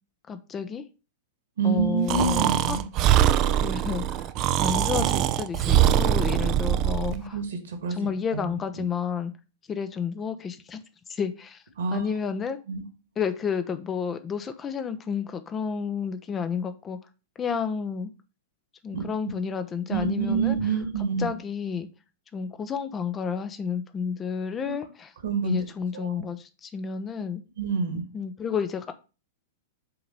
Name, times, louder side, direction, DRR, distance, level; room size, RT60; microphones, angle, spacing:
voice 1, 0.3-0.9 1.6-2.8 3.5-4.3 4.6-7.4 7.9-9.3 9.7-10.8 11.1-11.6 11.9-12.6 13.2-17.0 17.4-18.1 18.8-20.6 21.2-21.9 22.3-25.1 25.4-27.4 28.1-28.9, left 6 dB, 20° left, 0.6 m, -31 dB
voice 2, 1.6-2.8 7.1-8.0 8.3-8.6 11.8-12.0 12.7-12.8 18.9-19.0 19.9-21.3 24.6-24.8 25.2-25.6 25.9-26.1 27.6-28.0, right 5 dB, 60° right, 1.6 m, -27 dB
Breathing, 2.1-7.2, right 11 dB, 35° right, 0.4 m, -22 dB
5.7 x 3.9 x 5.2 m
figure-of-eight pair, 100°, 0 cm